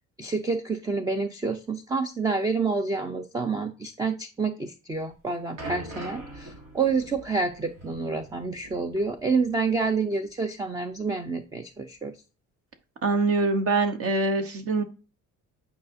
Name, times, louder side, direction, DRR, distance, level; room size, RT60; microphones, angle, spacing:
voice 1, 0.2-12.1, right 4 dB, 10° right, 8 dB, 0.4 m, -28 dB
sound 1, 5.0-9.9 10.1-10.3 11.0-11.1, right 1 dB, 80° right, 2.8 m, -43 dB
voice 2, 13.0-14.8, right 3 dB, 45° right, 8 dB, 0.9 m, -24 dB
9.4 x 4.8 x 2.6 m, 0.34 s
cardioid pair, 165°, 32 cm